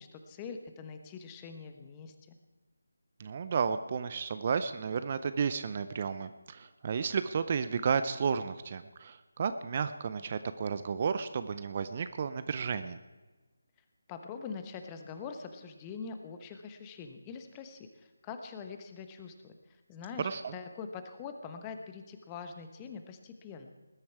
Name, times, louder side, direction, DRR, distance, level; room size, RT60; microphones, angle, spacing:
voice 1, 0.0-2.4 14.1-19.6 19.9-23.7, left 5 dB, 15° left, 6 dB, 1.1 m, -44 dB
voice 2, 3.2-13.0 20.2-20.6, right 6 dB, 35° right, 11 dB, 0.6 m, -32 dB
20.0 x 10.5 x 4.6 m, 1.2 s
figure-of-eight pair, 160°, 0 cm